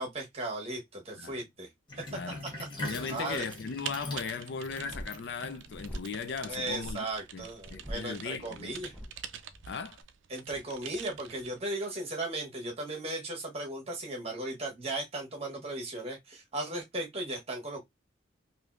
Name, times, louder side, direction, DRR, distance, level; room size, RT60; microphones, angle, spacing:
voice 1, 0.0-1.7 2.0-2.1 2.8-3.4 6.5-8.9 10.3-17.8, right 2 dB, 30° right, 1.1 m, -36 dB
Sink (filling or washing), 1.9-6.6, left 1 dB, 25° left, 0.9 m, -42 dB
voice 2, 2.1-2.4 2.8-7.1 7.3-8.8 9.6-10.0, left 5 dB, 60° left, 0.4 m, -38 dB
Typing, 3.0-11.6, right 9 dB, 65° right, 0.4 m, -46 dB
sound 1, 4.7-10.0, equal, 5° left, 0.6 m, -45 dB
3.4 x 2.7 x 2.4 m
head